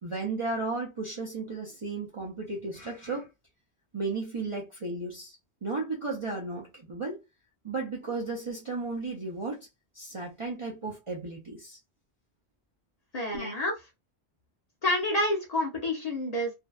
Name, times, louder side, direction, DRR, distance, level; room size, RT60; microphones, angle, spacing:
voice 1, 0.0-3.3 3.9-5.4 5.6-7.2 7.6-9.6 9.9-11.8 13.3-13.5, right 3 dB, 35° right, 0.5 m, -34 dB
voice 2, 13.1-13.7 14.8-16.5, left 1 dB, 40° left, 0.7 m, -28 dB
2.6 x 2.1 x 2.3 m
omnidirectional pair, 1.1 m